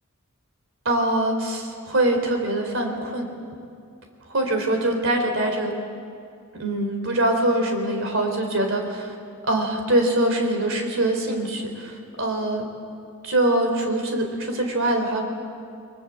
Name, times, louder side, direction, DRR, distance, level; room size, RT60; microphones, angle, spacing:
voice 1, 0.8-3.3 4.3-5.7 6.5-9.1 9.4-12.7 13.2-15.3, right 1 dB, 60° right, 4 dB, 4.1 m, -23 dB
29.0 x 21.5 x 7.6 m, 2.4 s
head